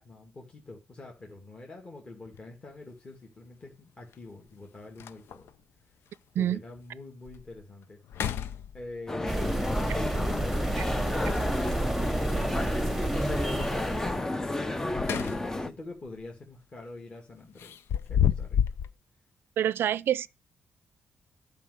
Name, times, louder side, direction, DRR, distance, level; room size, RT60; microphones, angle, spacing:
voice 1, 0.0-5.5 5.9-6.0 6.3-8.3 8.7-14.6 15.6-17.8 18.1-18.6, left 2 dB, 25° left, 2.3 m, -45 dB
sound 1, 2.3-2.4 4.1-4.2 4.6-4.7 5.0-5.5 6.1-6.2 6.8-6.9 7.3-7.6 8.0-9.1 11.2-11.9 14.6-15.7 16.1-16.3 17.6-18.9, left 9 dB, 75° left, 0.7 m, -30 dB
sound 2, 9.1-15.7, left 2 dB, 10° left, 0.6 m, -31 dB
sound 3, 9.3-14.2, right 2 dB, 5° right, 1.2 m, -31 dB
voice 2, 19.6-20.3, right 10 dB, 65° right, 0.5 m, -26 dB
11.5 x 5.4 x 6.4 m
cardioid pair, 155°, 4 cm